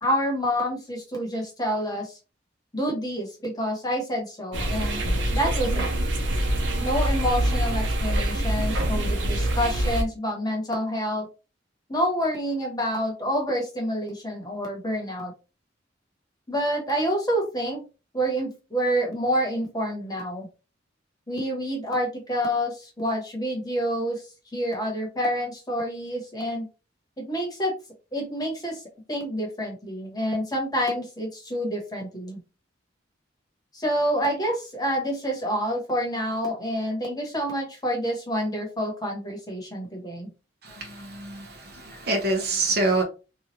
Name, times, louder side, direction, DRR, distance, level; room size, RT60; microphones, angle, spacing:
voice 1, 0.0-2.2 2.7-5.0 5.3-5.9 6.8-11.3 11.9-15.3 16.5-17.8 18.1-20.5 21.3-24.2 24.5-26.7 27.2-27.7 28.1-28.8 29.1-32.4 33.7-40.3, equal, 20° left, 1.1 m, -28 dB
sound 1, 4.5-10.0, right 1 dB, 85° right, 0.7 m, -25 dB
voice 2, 40.6-43.0, right 2 dB, 60° right, 0.9 m, -26 dB
3.0 x 2.4 x 2.9 m
head